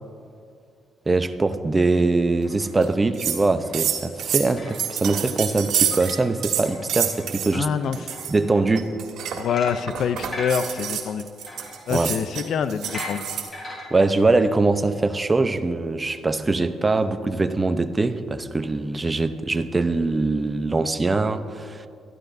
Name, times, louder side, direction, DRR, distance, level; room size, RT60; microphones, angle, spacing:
voice 1, 1.1-7.7 8.0-8.9 11.9-12.1 13.9-21.8, right 3 dB, 25° right, 10 dB, 0.7 m, -22 dB
sound 1, 2.4-2.8 3.4-3.8 4.2-5.2 5.6-7.3 7.7-8.8 9.5-9.9 10.2-12.4 12.8-13.9, left 1 dB, 30° left, 3.5 m, -39 dB
sound 2, 2.8-2.9 3.1-3.4 3.7-6.2 6.4-7.5 7.9-8.3 8.8-13.5, right 9 dB, 80° right, 1.8 m, -27 dB
voice 2, 7.5-8.1 9.4-11.3 11.9-13.3, left 7 dB, 65° left, 12 dB, 0.6 m, -26 dB
22.0 x 13.5 x 2.7 m, 2.4 s
cardioid pair, 90°, 0 cm